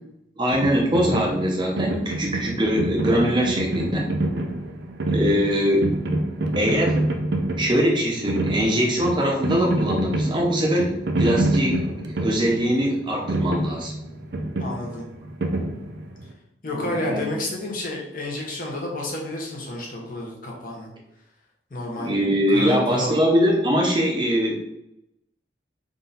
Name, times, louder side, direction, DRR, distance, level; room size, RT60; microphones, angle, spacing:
voice 1, 0.4-4.0 5.1-5.9 6.6-7.0 7.6-13.9 16.7-17.2 22.0-24.5, equal, 25° right, -1 dB, 0.6 m, -22 dB
sound 1, 0.5-16.3, right 1 dB, 70° right, 0.5 m, -27 dB
voice 2, 14.6-15.0 16.6-20.9 21.7-22.1 22.5-23.2, left 1 dB, 50° left, -2 dB, 1.0 m, -30 dB
3.8 x 2.7 x 4.0 m, 0.84 s
head